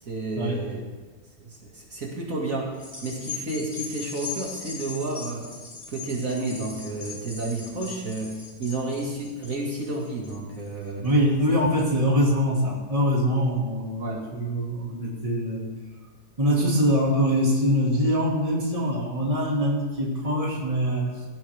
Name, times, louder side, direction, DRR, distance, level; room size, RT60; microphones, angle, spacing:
voice 1, 0.0-0.8 1.4-5.5 5.9-11.1 14.0-14.3, right 2 dB, 55° right, -2 dB, 2.7 m, -31 dB
sound 1, 2.7-11.4 11.9-12.0, left 4 dB, 45° left, 3.4 m, -39 dB
voice 2, 11.0-15.7 16.4-21.2, equal, 20° right, -3 dB, 2.5 m, -23 dB
17.0 x 15.0 x 3.6 m, 1.3 s
omnidirectional pair, 1.7 m